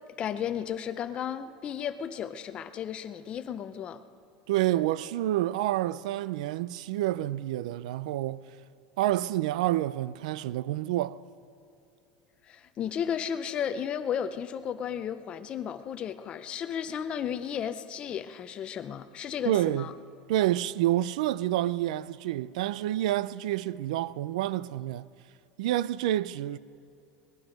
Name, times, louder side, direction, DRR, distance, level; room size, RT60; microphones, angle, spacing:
voice 1, 0.2-4.0 12.5-19.9, left 8 dB, 30° left, 0.6 m, -34 dB
voice 2, 4.5-8.5 9.0-11.2 19.5-19.9 20.3-25.1 25.6-26.6, right 14 dB, 90° right, 0.4 m, -28 dB
19.5 x 12.0 x 5.2 m
supercardioid pair, 160°, 4 cm